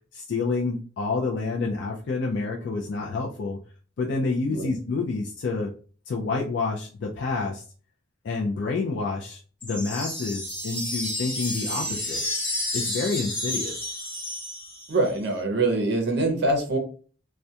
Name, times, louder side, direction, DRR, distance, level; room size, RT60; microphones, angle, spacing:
voice 1, 0.1-3.6 4.0-5.7 6.1-7.6 8.2-12.2 12.7-13.8, left 3 dB, 55° left, -1 dB, 0.3 m, -28 dB
sound 1, 9.6-15.1, left 1 dB, 5° left, 0.8 m, -31 dB
voice 2, 14.9-16.8, right 2 dB, 50° right, 2 dB, 0.6 m, -24 dB
2.3 x 2.1 x 2.7 m, 0.40 s
head